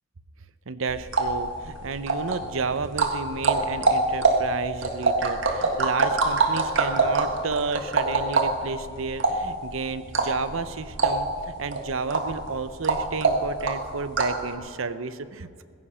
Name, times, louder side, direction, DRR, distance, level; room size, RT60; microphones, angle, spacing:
voice 1, 0.7-15.6, right 4 dB, 85° right, 13 dB, 0.8 m, -31 dB
sound 1, 0.9-14.5, right 3 dB, 65° right, 1.6 m, -25 dB
16.0 x 15.0 x 5.6 m, 2.3 s
head